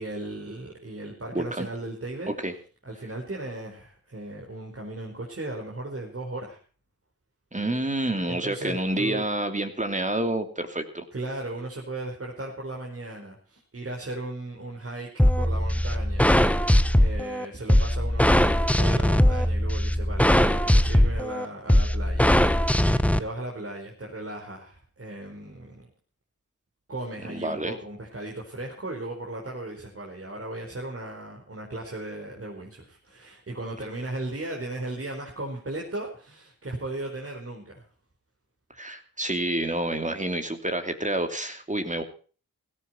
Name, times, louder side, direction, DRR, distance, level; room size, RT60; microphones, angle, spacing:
voice 1, 0.0-2.3 2.8-6.6 8.3-9.3 11.1-15.1 15.3-22.7 23.2-25.9 26.9-37.8, right 2 dB, 40° right, -1 dB, 4.6 m, -36 dB
voice 2, 1.3-1.7 2.4-2.5 7.5-11.0 27.3-27.7 38.8-42.0, right 1 dB, 20° right, 6 dB, 2.8 m, -28 dB
sound 1, 15.2-23.2, left 1 dB, 5° left, 1.1 m, -20 dB
16.5 x 13.5 x 4.5 m, 0.39 s
cardioid pair, 50°, 36 cm